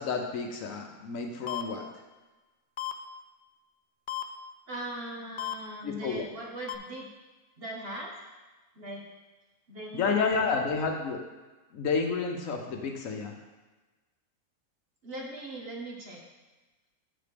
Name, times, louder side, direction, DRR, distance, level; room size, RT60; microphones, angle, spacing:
voice 1, 0.0-1.9 5.8-6.2 9.9-11.2 11.7-13.3, left 5 dB, 70° left, 3 dB, 1.2 m, -30 dB
sound 1, 1.5-1.6 2.8-2.9 4.1-4.2 5.4-5.5 6.7-6.8, left 12 dB, 85° left, 0.4 m, -33 dB
voice 2, 4.7-7.1 7.6-8.1 8.7-9.0 9.7-10.3 15.0-16.2, right 1 dB, 45° right, -2 dB, 1.3 m, -39 dB
8.1 x 4.2 x 5.1 m, 1.2 s
omnidirectional pair, 1.5 m